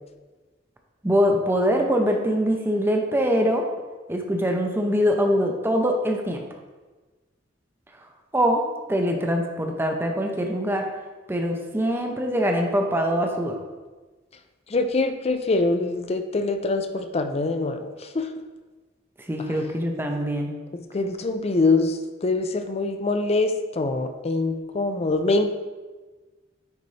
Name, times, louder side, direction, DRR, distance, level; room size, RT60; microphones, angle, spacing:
voice 1, 1.0-3.7 4.1-6.4 8.3-10.9 11.3-13.6 19.3-20.5, equal, 10° right, 2 dB, 0.7 m, -23 dB
voice 2, 14.7-18.3 20.7-25.5, left 3 dB, 35° left, 8 dB, 0.5 m, -24 dB
9.4 x 4.1 x 3.3 m, 1.3 s
head